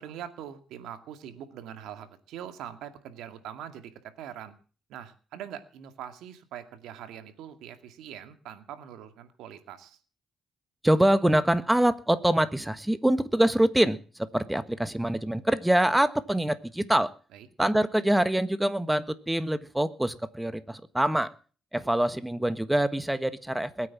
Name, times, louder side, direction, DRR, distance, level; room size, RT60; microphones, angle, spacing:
voice 1, 0.0-4.6 4.9-10.0 17.3-17.5, right 10 dB, 90° right, 8 dB, 2.3 m, -43 dB
voice 2, 10.8-17.1 17.6-21.3 21.7-23.9, right 1 dB, 5° right, 12 dB, 1.5 m, -25 dB
21.0 x 9.2 x 7.3 m, 0.40 s
cardioid pair, 90°, 0 cm